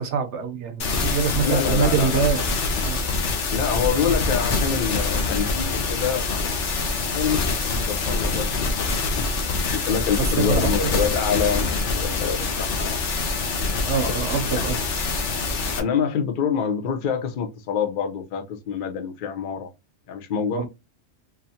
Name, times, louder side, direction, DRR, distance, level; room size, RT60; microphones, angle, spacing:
voice 1, 0.0-2.4 2.8-3.0 10.2-10.7 13.8-14.8 20.5-20.7, right 6 dB, 70° right, 0.9 m, -24 dB
sound 1, 0.8-15.8, left 3 dB, 70° left, 1.1 m, -25 dB
voice 2, 1.4-2.2 3.5-6.5 7.1-8.8 9.2-9.3 9.6-13.0 14.0-14.1 14.5-14.6 15.8-19.7 20.1-20.7, left 7 dB, 55° left, 0.7 m, -26 dB
3.9 x 2.6 x 2.7 m
omnidirectional pair, 1.3 m